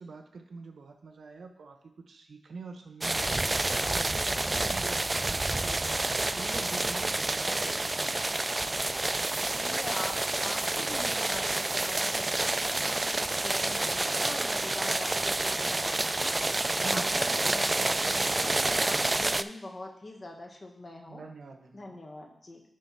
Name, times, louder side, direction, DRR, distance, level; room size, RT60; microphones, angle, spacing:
voice 1, 0.0-1.8 2.0-3.4 3.9-5.9 6.3-8.6 16.8-17.2 21.1-22.0, right 4 dB, 80° right, 5 dB, 0.9 m, -45 dB
sound 1, 3.0-19.4, right 2 dB, 30° right, 0.3 m, -29 dB
voice 2, 4.4-4.8 9.5-16.3 16.9-21.2 21.7-22.6, left 2 dB, 45° left, 2 dB, 1.4 m, -43 dB
9.6 x 3.4 x 5.8 m, 0.74 s
cardioid pair, 65°, 0 cm